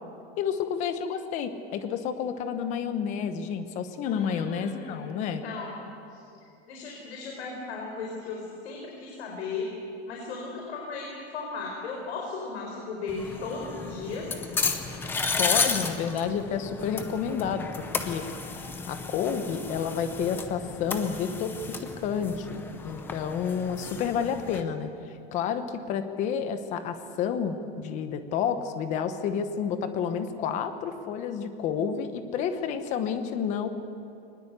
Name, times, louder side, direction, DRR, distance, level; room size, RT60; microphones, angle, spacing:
voice 1, 0.4-5.4 15.4-18.3 18.9-24.9 25.3-33.7, left 7 dB, 20° left, 10 dB, 1.0 m, -30 dB
voice 2, 4.0-6.2 6.7-9.7 10.1-14.3, left 4 dB, 80° left, -1 dB, 4.8 m, -36 dB
sound 1, 13.1-24.6, left 4 dB, 5° left, 0.6 m, -33 dB
21.5 x 20.0 x 8.2 m, 2.6 s
supercardioid pair, 175°, 32 cm